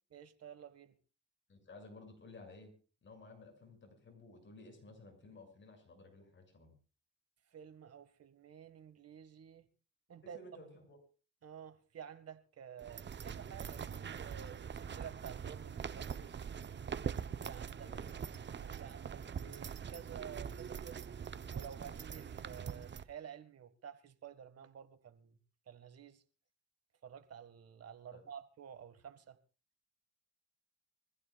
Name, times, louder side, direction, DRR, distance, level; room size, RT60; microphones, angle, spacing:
voice 1, 0.1-1.0 7.5-9.7 10.1-10.4 11.4-16.4 17.2-17.9 18.6-21.0 21.5-25.4 25.7-26.2 27.0-29.4, right 8 dB, 55° right, 1.8 m, -51 dB
voice 2, 1.5-2.7 3.0-6.7 10.2-11.0 17.8-18.1 28.1-28.2, left 2 dB, 40° left, 6.8 m, -55 dB
sound 1, 12.8-23.0, right 7 dB, 35° right, 0.9 m, -43 dB
25.0 x 15.0 x 2.4 m
cardioid pair, 90°, 30 cm